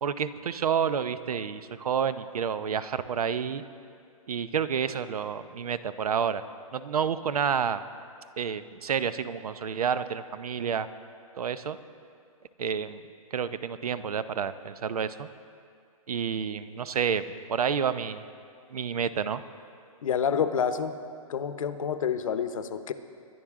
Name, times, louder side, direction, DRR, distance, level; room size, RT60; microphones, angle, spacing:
voice 1, 0.0-3.6 4.3-6.4 6.7-7.8 8.4-10.9 11.4-11.8 12.6-13.0 13.3-15.3 16.1-17.2 17.5-18.3 18.7-19.4, right 7 dB, 85° right, 14 dB, 0.7 m, -29 dB
voice 2, 20.0-21.0 21.3-22.9, left 7 dB, 65° left, 10 dB, 0.9 m, -28 dB
23.0 x 10.5 x 3.7 m, 2.3 s
hypercardioid pair, 165°, 19 cm